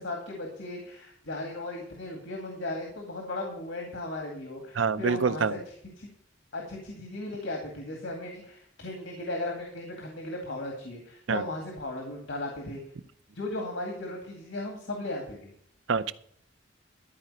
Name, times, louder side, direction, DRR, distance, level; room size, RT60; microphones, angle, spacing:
voice 1, 0.0-5.6 6.0-6.1 6.5-12.8 13.3-15.5, left 2 dB, 75° left, 2.2 m, -36 dB
voice 2, 4.8-5.5 11.3-11.4 15.9-16.1, right 5 dB, 85° right, 0.6 m, -26 dB
13.0 x 5.0 x 8.9 m
head